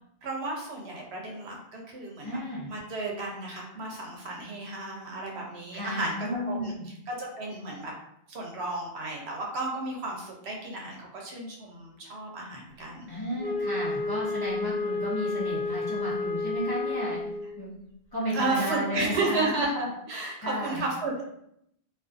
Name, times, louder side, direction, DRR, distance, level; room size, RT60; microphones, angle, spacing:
voice 1, 0.2-2.4 2.7-7.9 8.3-13.1 18.3-21.2, right 2 dB, 75° right, -1 dB, 0.9 m, -33 dB
voice 2, 2.2-2.7 5.7-6.9 13.1-17.7 18.1-19.6 20.4-20.9, equal, 25° left, -8 dB, 0.6 m, -33 dB
Wind instrument woodwind instrument, 13.4-17.6, left 3 dB, 60° left, 1.0 m, -31 dB
2.4 x 2.4 x 2.4 m, 0.75 s
omnidirectional pair, 1.1 m